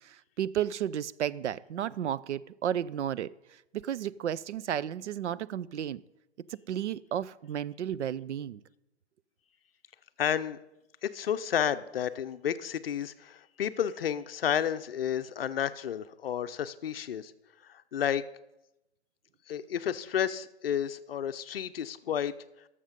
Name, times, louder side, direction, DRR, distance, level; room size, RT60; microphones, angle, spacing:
voice 1, 0.0-3.3 3.7-6.0 6.7-8.6, right 10 dB, 80° right, 0.5 m, -33 dB
voice 2, 10.2-10.6 11.0-17.3 17.6-18.2 19.5-22.3, left 9 dB, 55° left, 0.6 m, -31 dB
13.0 x 6.7 x 5.2 m
hypercardioid pair, 160°, 34 cm